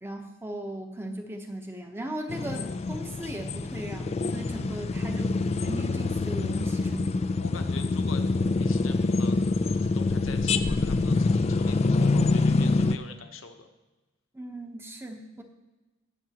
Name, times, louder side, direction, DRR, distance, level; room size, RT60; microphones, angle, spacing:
voice 1, 0.0-7.3 14.3-15.4, right 1 dB, 10° right, 4 dB, 0.9 m, -38 dB
sound 1, 2.3-13.0, left 3 dB, 30° left, 0.4 m, -26 dB
voice 2, 7.4-8.3 8.6-9.4 9.7-13.7, left 4 dB, 75° left, 6 dB, 1.0 m, -44 dB
20.0 x 7.3 x 2.9 m, 1.1 s
head